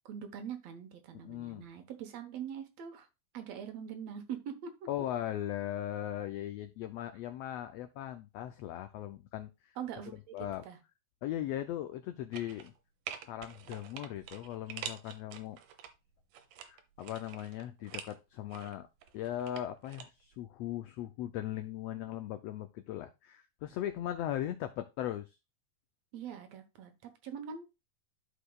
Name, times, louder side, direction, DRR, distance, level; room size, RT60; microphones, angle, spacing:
voice 1, 0.1-3.1 3.3-4.7 9.8-10.4 10.6-10.8 26.1-27.6, right 8 dB, 65° right, 7 dB, 2.0 m, -43 dB
voice 2, 1.2-1.7 4.9-9.8 10.3-10.6 11.2-12.7 13.2-15.6 16.6-18.9 19.1-25.4, left 12 dB, 85° left, 9 dB, 1.4 m, -38 dB
sound 1, 12.3-12.8 13.1-15.9 16.3-18.2 18.5-20.1 20.3-20.4, right 9 dB, 85° right, 2.4 m, -46 dB
13.5 x 4.9 x 2.3 m, 0.26 s
omnidirectional pair, 3.5 m